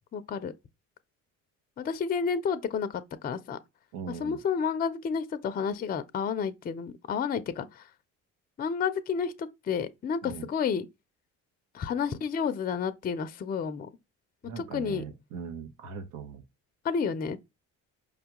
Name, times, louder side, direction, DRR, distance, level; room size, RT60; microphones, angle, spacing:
voice 1, 0.1-0.5 1.8-3.6 4.2-7.9 8.6-10.9 11.7-13.9 14.6-15.0 16.8-17.4, left 6 dB, 25° left, 0.4 m, -30 dB
voice 2, 3.9-4.4 10.2-10.5 14.4-16.4, right 6 dB, 80° right, 0.9 m, -40 dB
4.9 x 2.2 x 2.9 m
supercardioid pair, 80°, 35 cm